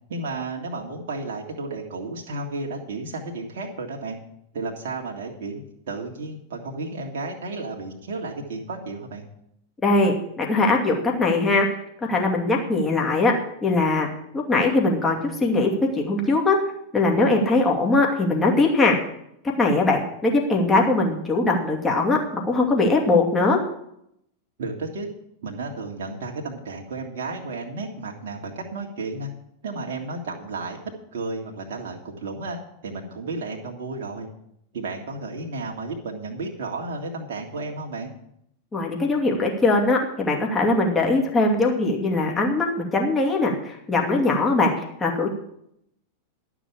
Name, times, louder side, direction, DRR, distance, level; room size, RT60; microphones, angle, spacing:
voice 1, 0.1-4.2 4.5-9.2 24.6-25.1 25.4-29.3 29.6-30.8 31.1-34.3 34.7-38.1, right 3 dB, 55° right, 0 dB, 1.9 m, -33 dB
voice 2, 9.8-11.7 12.0-13.3 13.6-14.1 14.3-16.6 16.9-19.0 19.6-23.6 38.7-44.7 45.0-45.3, left 2 dB, 15° left, 0 dB, 2.4 m, -21 dB
12.0 x 6.2 x 8.6 m, 0.75 s
figure-of-eight pair, 90°, 0 cm